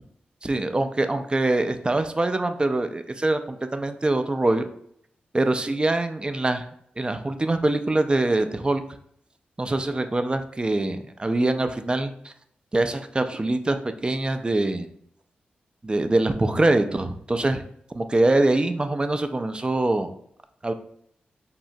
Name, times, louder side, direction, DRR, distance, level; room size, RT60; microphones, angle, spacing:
voice 1, 0.4-4.7 5.3-6.7 7.0-8.8 9.6-12.3 12.7-14.9 15.8-17.6 17.9-20.1 20.6-20.7, right 2 dB, 25° right, 8 dB, 0.4 m, -24 dB
3.6 x 2.1 x 2.5 m, 0.68 s
supercardioid pair, 40°, 4 cm